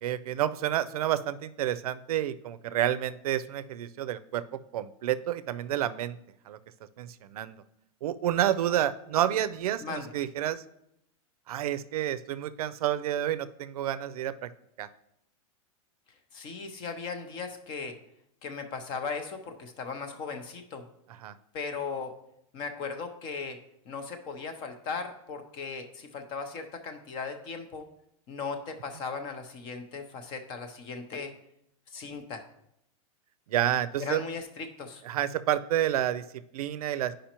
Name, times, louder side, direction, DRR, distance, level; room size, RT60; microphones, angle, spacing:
voice 1, 0.0-4.4 4.7-6.2 6.5-6.6 7.0-7.6 8.0-10.6 11.5-14.5 14.8-14.9 21.2-21.3 33.5-34.2 35.0-36.2 36.5-37.1, right 12 dB, 85° right, 14 dB, 0.5 m, -29 dB
voice 2, 9.8-10.1 16.3-18.0 18.4-20.8 21.5-22.1 22.5-23.6 23.9-27.9 28.3-31.3 31.9-32.4 34.0-35.0, left 5 dB, 25° left, 7 dB, 0.6 m, -37 dB
10.0 x 5.0 x 2.9 m, 0.79 s
supercardioid pair, 165°, 18 cm